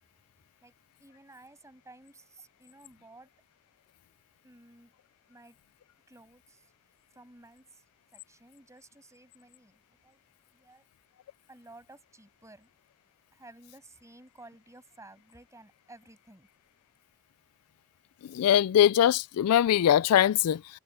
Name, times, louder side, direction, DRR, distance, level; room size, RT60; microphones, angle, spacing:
voice 1, 0.6-3.3 4.4-4.9 5.3-5.6 6.1-6.7 7.1-7.8 8.1-10.2 10.5-10.8 11.5-12.7 13.3-16.5, right 2 dB, 15° right, 7.0 m, -54 dB
voice 2, 18.2-20.8, left 10 dB, 75° left, 0.3 m, -22 dB
head